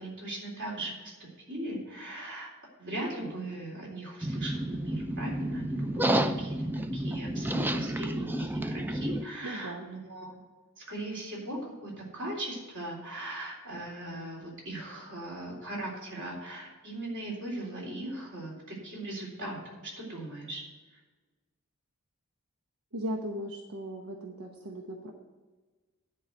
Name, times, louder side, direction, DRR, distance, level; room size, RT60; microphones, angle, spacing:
voice 1, 0.0-2.5 2.8-6.7 6.9-10.4 10.8-20.6, right 1 dB, 55° right, -2 dB, 3.6 m, -39 dB
sound 1, 4.2-9.2, right 1 dB, 10° right, 0.4 m, -30 dB
voice 2, 9.4-9.9 22.9-25.1, equal, 90° right, 2 dB, 1.0 m, -37 dB
10.5 x 4.8 x 7.8 m, 1.3 s
head